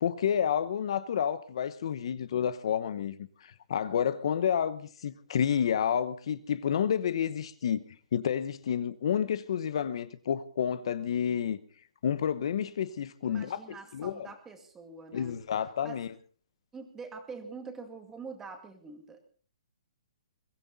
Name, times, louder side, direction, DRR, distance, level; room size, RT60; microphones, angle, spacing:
voice 1, 0.0-7.8 8.1-11.6 12.0-14.3 15.1-16.1, left 8 dB, 50° left, 0.9 m, -30 dB
voice 2, 13.2-15.4 15.8-16.0 16.7-19.2, right 4 dB, 10° right, 2.2 m, -45 dB
22.5 x 15.0 x 4.0 m
hypercardioid pair, 165°, 4 cm